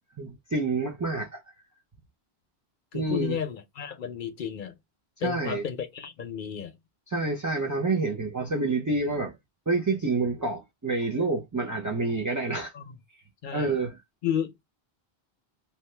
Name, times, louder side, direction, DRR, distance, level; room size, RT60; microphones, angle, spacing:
voice 1, 0.2-1.4 2.9-3.4 5.2-5.6 7.1-9.3 9.7-12.7 13.5-14.0, right 3 dB, 25° right, 0.4 m, -28 dB
voice 2, 2.9-4.7 5.2-6.7 12.7-13.0 13.4-13.8 14.2-14.7, left 8 dB, 60° left, 0.7 m, -32 dB
2.8 x 2.3 x 3.2 m
omnidirectional pair, 1.0 m